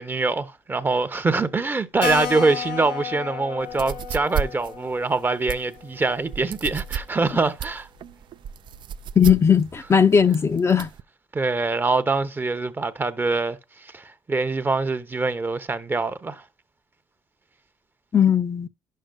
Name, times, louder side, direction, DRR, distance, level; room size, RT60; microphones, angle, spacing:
voice 1, 0.0-7.9 11.3-16.4, right 3 dB, 20° right, 0.8 m, -24 dB
Keyboard (musical), 2.0-7.1 7.3-7.4 7.7-7.8 8.1-8.2 8.7-9.1, left 9 dB, 85° left, 2.0 m, -34 dB
sound 1, 3.6-11.0, right 8 dB, 50° right, 0.4 m, -32 dB
voice 2, 9.2-10.9 18.1-18.7, left 7 dB, 30° left, 0.6 m, -18 dB
11.0 x 6.5 x 2.3 m
cardioid pair, 90°, 10 cm